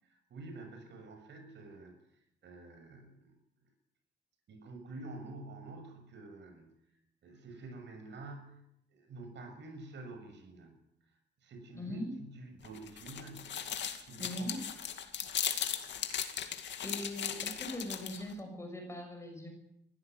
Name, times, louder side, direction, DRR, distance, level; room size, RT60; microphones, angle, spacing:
voice 1, 0.0-2.0 2.4-3.4 4.5-6.7 7.2-8.6 8.9-10.7 11.4-13.5 14.0-14.6, right 2 dB, 80° right, 6 dB, 6.9 m, -48 dB
voice 2, 11.7-12.1 14.2-14.6 16.8-19.5, left 1 dB, 15° left, 4 dB, 6.7 m, -40 dB
sound 1, 12.6-18.3, left 8 dB, 80° left, 2.4 m, -37 dB
23.5 x 16.5 x 9.3 m, 0.78 s
wide cardioid pair, 170°, 18 cm